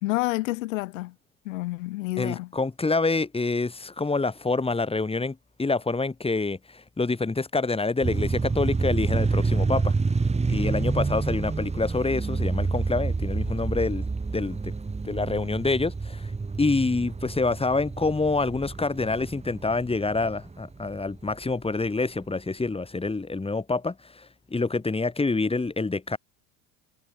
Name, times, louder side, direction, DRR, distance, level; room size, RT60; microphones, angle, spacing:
voice 1, 0.0-1.1 1.4-2.5, left 20 dB, 80° left, 4.3 m, -29 dB
voice 2, 2.2-9.9 10.5-14.1 14.3-14.7 15.0-16.3 16.6-26.2, left 3 dB, 15° left, 6.9 m, -27 dB
sound 1, 8.0-21.1, right 4 dB, 15° right, 3.5 m, -28 dB
supercardioid pair, 90°, 38 cm